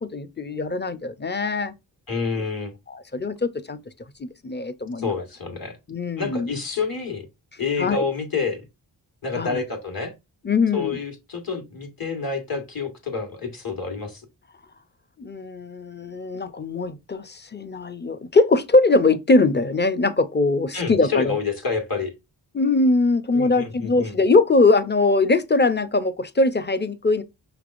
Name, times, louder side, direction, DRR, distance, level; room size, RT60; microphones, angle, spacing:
voice 1, 0.1-1.7 2.9-3.8 4.2-5.1 5.9-6.5 7.8-8.0 9.3-9.6 10.4-11.0 15.2-21.4 22.5-27.2, left 3 dB, 25° left, 0.5 m, -21 dB
voice 2, 2.1-2.7 5.0-5.8 6.2-7.2 7.6-8.6 9.2-10.1 10.7-14.2 20.7-22.1 23.3-24.2, left 5 dB, 50° left, 1.5 m, -28 dB
5.6 x 3.3 x 2.5 m
wide cardioid pair, 65°, 44 cm